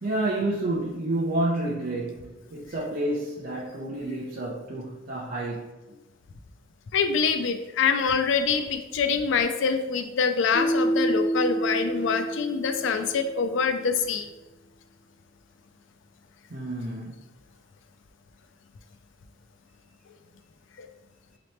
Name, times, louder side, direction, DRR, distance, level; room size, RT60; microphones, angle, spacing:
voice 1, 0.0-5.7 11.9-12.3 16.5-17.2, right 1 dB, 50° right, -6 dB, 0.7 m, -30 dB
voice 2, 6.9-14.3 20.8-20.9, left 5 dB, 65° left, 8 dB, 0.4 m, -25 dB
Keyboard (musical), 10.5-13.4, right 1 dB, 5° right, 0.7 m, -28 dB
4.0 x 3.0 x 3.2 m, 1.1 s
head